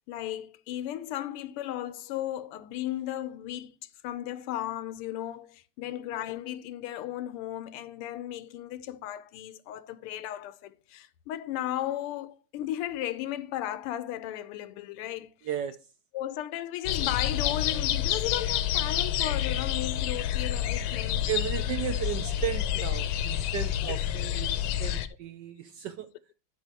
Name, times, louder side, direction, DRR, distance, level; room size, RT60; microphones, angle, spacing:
voice 1, 0.0-15.3 16.1-21.3, left 13 dB, 90° left, 1.6 m, -35 dB
sound 1, 16.8-25.1, left 11 dB, 70° left, 1.3 m, -28 dB
voice 2, 21.3-26.1, right 10 dB, 75° right, 1.0 m, -34 dB
12.0 x 5.1 x 3.4 m
omnidirectional pair, 2.4 m